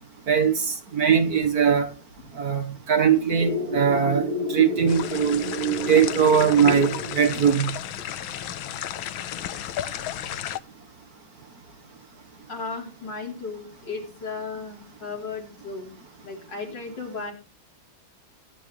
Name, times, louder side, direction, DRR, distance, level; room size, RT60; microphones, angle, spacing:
voice 1, 0.3-1.9 2.3-5.4 5.9-7.8, right 7 dB, 50° right, 1.6 m, -21 dB
sound 1, 3.4-7.7, right 1 dB, 25° right, 1.1 m, -30 dB
sound 2, 4.9-10.6, left 11 dB, 80° left, 1.6 m, -33 dB
voice 2, 12.5-16.0 16.2-17.3, left 4 dB, 60° left, 4.3 m, -35 dB
21.5 x 9.6 x 3.2 m
omnidirectional pair, 2.1 m